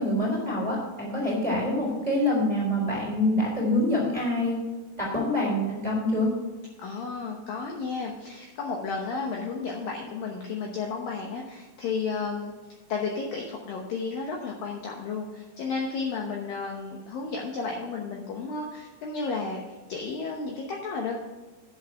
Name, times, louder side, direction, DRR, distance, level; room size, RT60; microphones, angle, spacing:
voice 1, 0.0-4.6 5.0-6.3, left 1 dB, 10° right, -3 dB, 2.8 m, -26 dB
voice 2, 6.8-12.5 12.9-21.2, left 4 dB, 70° left, 0 dB, 2.3 m, -33 dB
11.0 x 7.4 x 4.7 m, 1.3 s
omnidirectional pair, 5.2 m